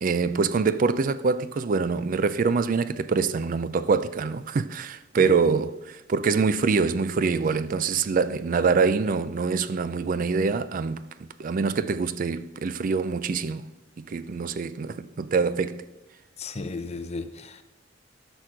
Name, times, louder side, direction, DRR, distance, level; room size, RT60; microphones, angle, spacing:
voice 1, 0.0-13.7 14.0-15.8, right 4 dB, 45° right, 0.4 m, -25 dB
voice 2, 16.4-17.6, left 3 dB, 35° left, 0.6 m, -34 dB
12.5 x 6.2 x 5.0 m
head